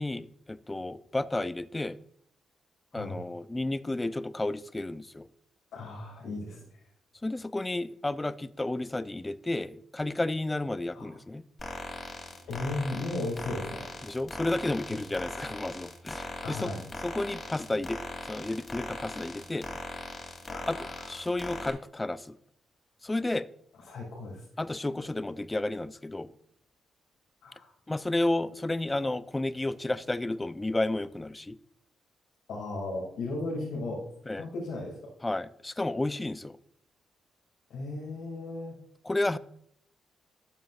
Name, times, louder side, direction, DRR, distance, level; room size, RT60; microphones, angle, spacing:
voice 1, 0.0-2.0 2.9-5.3 7.2-11.4 14.0-16.7 17.0-19.7 20.7-22.4 23.0-23.5 24.6-26.3 27.9-31.6 34.3-34.5 35.2-36.6 39.0-39.4, left 2 dB, 20° left, 0.5 m, -32 dB
voice 2, 5.7-6.6 10.9-11.2 12.5-13.8 16.4-16.8 20.5-21.2 23.8-24.4 27.4-27.7 32.5-34.0 34.3-34.9 37.7-38.7, left 2 dB, 75° left, 2.5 m, -35 dB
sound 1, 11.6-21.7, left 1 dB, 35° left, 2.9 m, -40 dB
12.5 x 7.5 x 2.5 m
supercardioid pair, 50°, 0 cm